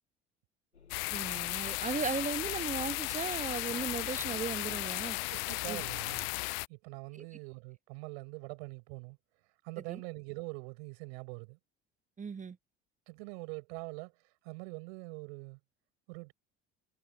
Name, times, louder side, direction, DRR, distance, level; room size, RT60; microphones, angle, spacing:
sound 1, 0.7-6.4, left 6 dB, 85° left, 7.1 m, -61 dB
sound 2, 0.9-6.7, left 30 dB, 60° left, 0.5 m, -35 dB
voice 1, 1.1-5.2 5.7-5.8 7.1-7.2 9.9-10.0 12.2-12.6, right 5 dB, 25° right, 1.4 m, -37 dB
voice 2, 5.3-6.3 6.7-9.2 9.6-11.6 13.1-14.1 14.4-15.6 16.1-16.3, right 34 dB, 65° right, 6.9 m, -44 dB
figure-of-eight pair, 60°, 33 cm